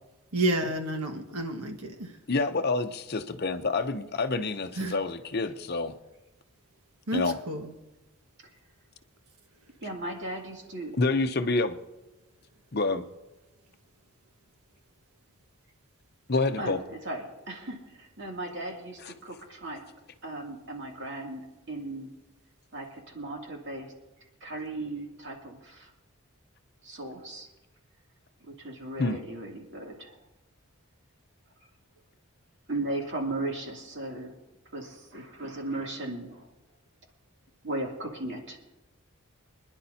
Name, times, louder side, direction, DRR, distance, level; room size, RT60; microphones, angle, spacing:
voice 1, 0.3-2.2 4.8-5.0 7.1-7.7, right 1 dB, 90° right, 1.6 m, -30 dB
voice 2, 2.3-5.9 7.1-7.4 10.9-11.8 12.7-13.0 16.3-16.8 29.0-29.2, left 3 dB, 45° left, 0.7 m, -27 dB
voice 3, 9.8-11.0 16.6-19.9 20.2-22.1 22.7-23.9 24.4-25.9 26.8-27.5 28.5-30.2 32.7-34.3 34.7-36.5 37.6-38.6, right 2 dB, 50° right, 2.7 m, -36 dB
26.0 x 11.0 x 2.8 m
head